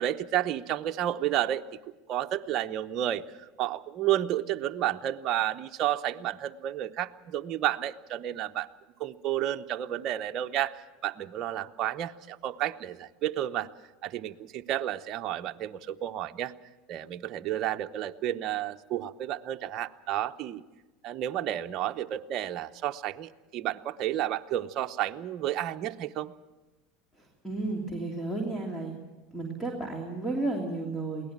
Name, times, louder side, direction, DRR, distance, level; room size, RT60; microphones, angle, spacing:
voice 1, 0.0-1.6 2.1-8.7 9.0-13.7 14.0-16.5 16.9-20.6 21.0-26.3, right 12 dB, 50° right, 8 dB, 0.8 m, -31 dB
voice 2, 27.4-28.9 29.3-31.3, right 2 dB, 5° left, 0 dB, 3.0 m, -32 dB
22.5 x 17.5 x 7.4 m, 1.2 s
hypercardioid pair, 100°, 0 cm